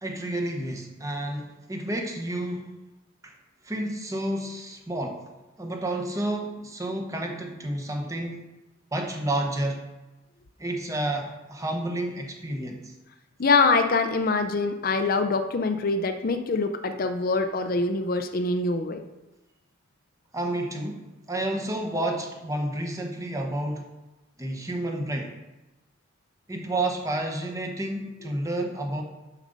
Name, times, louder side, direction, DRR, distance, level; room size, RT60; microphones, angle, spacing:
voice 1, 0.0-2.7 3.2-3.4 3.6-5.2 5.6-8.4 8.9-9.8 10.6-12.9 20.3-23.9 24.4-25.4 26.5-29.0, right 1 dB, 15° right, 3 dB, 0.9 m, -30 dB
voice 2, 13.4-19.0, left 3 dB, 45° left, 7 dB, 0.5 m, -24 dB
7.3 x 6.4 x 5.3 m, 1.1 s
head